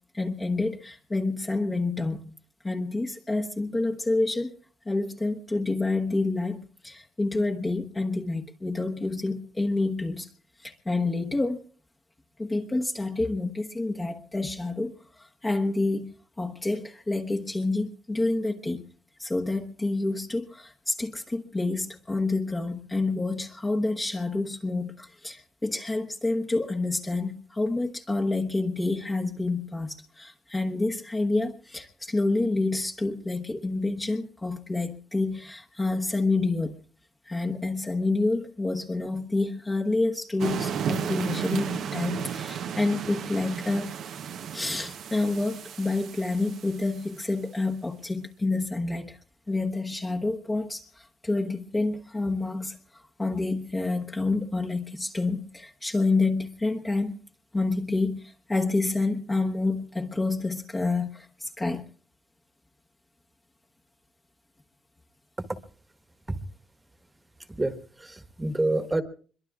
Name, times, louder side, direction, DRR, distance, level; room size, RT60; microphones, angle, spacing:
voice 1, 0.1-2.3 2.6-4.5 4.9-10.3 10.6-11.6 12.4-14.9 15.2-18.8 19.2-36.7 37.3-43.9 44.5-49.2 49.5-52.8 53.2-57.1 57.5-61.8, left 2 dB, 20° left, 0 dB, 1.1 m, -28 dB
sound 1, 40.4-47.1, right 8 dB, 75° right, 0.9 m, -33 dB
voice 2, 67.4-69.0, right 2 dB, 15° right, 8 dB, 1.5 m, -28 dB
25.0 x 22.5 x 2.4 m, 0.41 s
cardioid pair, 90°, 0 cm